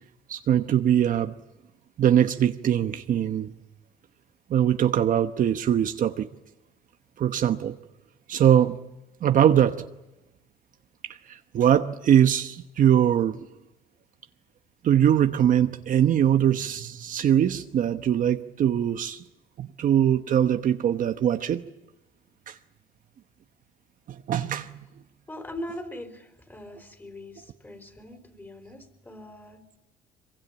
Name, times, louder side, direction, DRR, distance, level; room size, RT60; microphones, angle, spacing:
voice 1, 0.3-1.3 2.0-3.5 4.5-6.3 7.2-7.8 8.3-8.8 9.2-9.9 11.0-13.4 14.8-19.2 19.6-21.6 22.5-22.6 24.1-24.7, right 10 dB, 50° right, 1.1 m, -22 dB
voice 2, 25.3-29.6, left 1 dB, 10° left, 4.2 m, -41 dB
23.5 x 23.5 x 8.7 m
cardioid pair, 110°, 17 cm